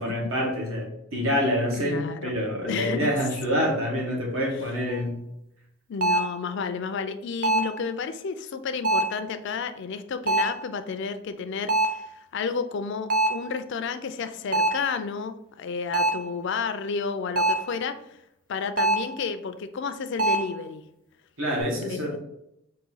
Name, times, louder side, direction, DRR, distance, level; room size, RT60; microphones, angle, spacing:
voice 1, 0.0-5.2 21.4-22.2, equal, 70° right, -1 dB, 1.3 m, -27 dB
voice 2, 1.7-2.3 2.6-3.1 5.9-18.0 18.5-20.8 21.9-22.2, left 5 dB, 55° left, 10 dB, 0.4 m, -31 dB
sound 1, 4.9-5.0 6.0-6.4 7.4-7.8 8.8-9.2 10.3-10.6 11.7-12.1 13.1-13.5 14.5-14.9 15.9-16.3 17.4-17.7 18.8-19.2 20.2-20.6, right 2 dB, 40° right, 0.5 m, -24 dB
4.0 x 2.7 x 3.9 m, 0.81 s
head